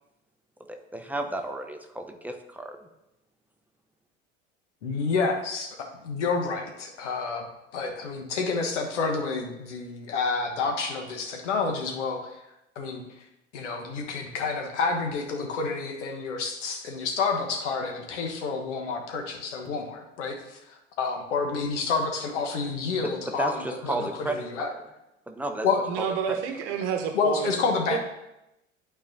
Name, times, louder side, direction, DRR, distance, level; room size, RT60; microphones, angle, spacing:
voice 1, 0.7-2.8 23.0-24.8 25.3-25.7 26.0-26.4, right 2 dB, 5° right, 4 dB, 0.8 m, -33 dB
voice 2, 4.8-5.7 6.0-7.5 7.7-12.4 12.7-13.0 13.5-24.7 25.6-25.8 27.1-28.0, left 4 dB, 70° left, 3 dB, 1.3 m, -29 dB
voice 3, 25.9-27.5 27.8-28.0, right 7 dB, 55° right, 5 dB, 1.0 m, -29 dB
11.5 x 4.6 x 2.7 m, 0.90 s
figure-of-eight pair, 70°, 37 cm